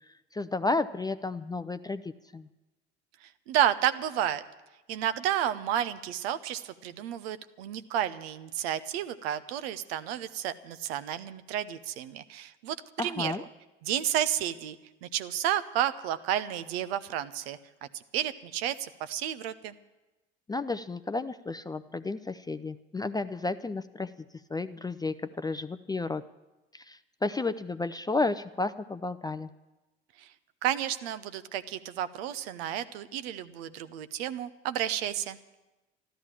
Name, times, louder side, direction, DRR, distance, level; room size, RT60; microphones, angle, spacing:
voice 1, 0.3-2.5 13.0-13.4 20.5-24.1 24.5-26.2 26.7-29.5, left 3 dB, 10° left, 12 dB, 0.5 m, -32 dB
voice 2, 3.2-4.4 4.9-13.4 13.8-14.8 15.0-17.6 17.9-19.7 30.2-30.3 30.6-35.4, right 11 dB, 65° right, 12 dB, 0.8 m, -31 dB
13.5 x 12.5 x 7.4 m, 1.1 s
figure-of-eight pair, 65°, 33 cm